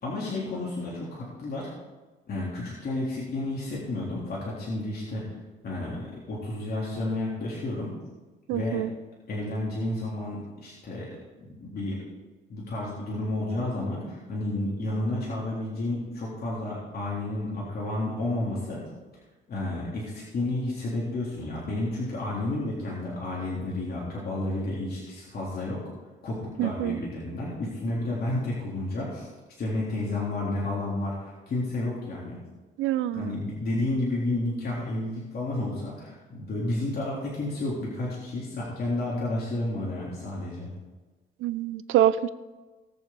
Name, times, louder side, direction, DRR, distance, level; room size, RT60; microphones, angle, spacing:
voice 1, 0.0-1.7 2.3-5.2 5.6-7.9 8.5-8.8 9.3-11.1 11.4-12.0 12.5-18.8 19.5-25.8 26.2-29.3 29.6-32.4 33.1-40.7, left 2 dB, 50° left, -6 dB, 3.8 m, -31 dB
voice 2, 8.5-8.9 26.6-27.0 32.8-33.3 41.4-42.3, right 12 dB, 90° right, 15 dB, 0.6 m, -25 dB
20.0 x 7.1 x 4.1 m, 1.2 s
cardioid pair, 90°, 20 cm